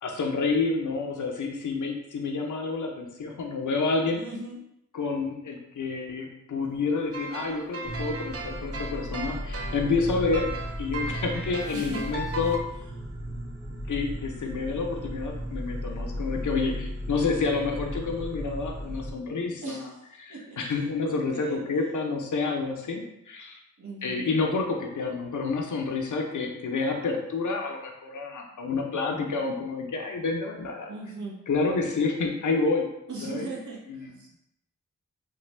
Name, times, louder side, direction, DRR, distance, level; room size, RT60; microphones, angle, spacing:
voice 1, 0.0-4.2 4.9-10.5 10.8-12.6 13.9-19.9 20.2-23.6 24.0-30.9 31.5-32.9 33.2-33.5 33.9-34.1, left 4 dB, 75° left, 2 dB, 0.6 m, -29 dB
voice 2, 4.1-4.6 11.0-11.2 11.7-12.0 19.6-20.0 20.3-20.6 21.1-21.6 23.8-24.3 30.9-31.4 33.1-34.4, right 3 dB, 65° right, -3 dB, 0.9 m, -39 dB
sound 1, 7.1-12.6, right 2 dB, 50° right, 0.5 m, -37 dB
sound 2, 7.8-19.1, equal, 10° right, 0.8 m, -35 dB
3.2 x 2.2 x 3.2 m, 0.83 s
wide cardioid pair, 90°, 31 cm